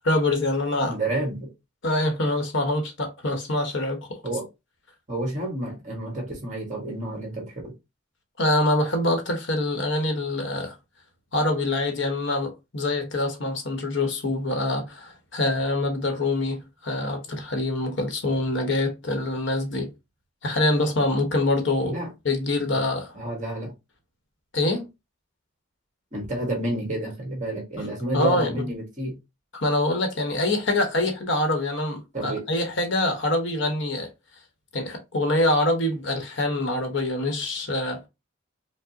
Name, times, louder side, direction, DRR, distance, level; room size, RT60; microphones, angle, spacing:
voice 1, 0.0-1.0 1.8-4.2 8.4-10.8 11.3-19.9 20.4-21.9 22.2-23.1 24.5-24.8 28.1-28.6 29.5-34.1 34.7-38.0, left 2 dB, 65° left, 1.0 m, -25 dB
voice 2, 0.9-1.5 4.2-4.5 5.1-7.7 21.8-22.1 23.1-23.7 26.1-29.2 32.1-32.5, right 1 dB, 35° right, 1.6 m, -30 dB
4.7 x 2.1 x 2.8 m
head